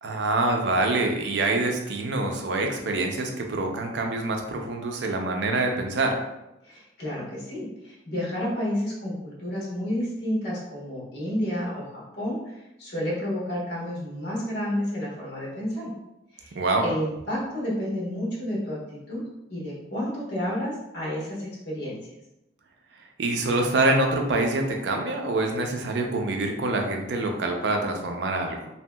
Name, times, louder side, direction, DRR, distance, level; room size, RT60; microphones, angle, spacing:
voice 1, 0.0-6.2 16.5-16.8 23.2-28.7, right 2 dB, 80° right, 3 dB, 0.5 m, -25 dB
voice 2, 6.6-12.5 12.8-15.9 16.3-19.2 19.5-22.0, equal, 65° left, -5 dB, 1.1 m, -30 dB
2.7 x 2.7 x 2.2 m, 0.92 s
head